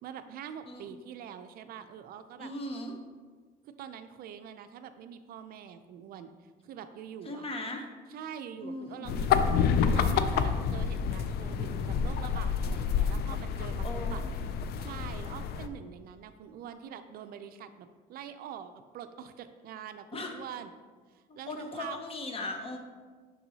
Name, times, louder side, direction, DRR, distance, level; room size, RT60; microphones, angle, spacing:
voice 1, 0.0-2.5 3.6-6.3 6.6-7.5 8.1-14.2 14.8-20.7 21.1-22.0, right 8 dB, 65° right, 9 dB, 0.4 m, -44 dB
voice 2, 2.4-2.9 7.2-7.9 8.6-9.1 13.8-14.3 20.1-20.4 21.3-22.8, left 2 dB, 35° left, 4 dB, 0.8 m, -38 dB
sound 1, 9.0-15.7, left 6 dB, 70° left, 0.4 m, -28 dB
6.1 x 5.7 x 2.8 m, 1.5 s
cardioid pair, 110°, 17 cm